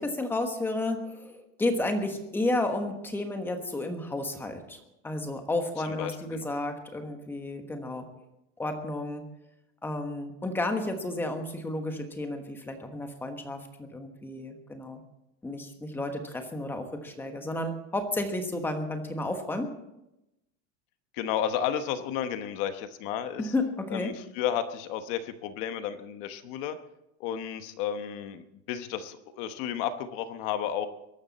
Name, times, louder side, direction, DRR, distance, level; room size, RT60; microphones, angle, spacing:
voice 1, 0.0-4.8 5.0-8.1 8.6-9.2 9.8-15.0 15.4-19.7 23.4-24.1, left 2 dB, 5° left, 5 dB, 1.2 m, -32 dB
voice 2, 5.8-6.5 21.1-23.5 23.9-26.8 27.2-30.9, left 9 dB, 45° left, 10 dB, 1.1 m, -32 dB
22.5 x 12.5 x 4.2 m, 0.88 s
supercardioid pair, 175°, 36 cm